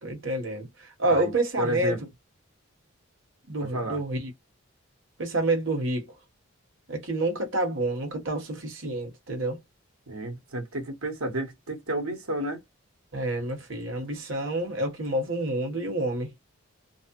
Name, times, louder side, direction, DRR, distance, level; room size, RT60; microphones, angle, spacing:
voice 1, 0.0-0.7 1.0-1.9 3.5-4.3 5.2-6.1 6.9-9.6 13.1-16.3, right 2 dB, 60° right, 1.4 m, -28 dB
voice 2, 1.6-2.0 3.6-4.0 10.1-12.6, right 1 dB, 90° right, 1.3 m, -31 dB
3.3 x 2.1 x 2.9 m
head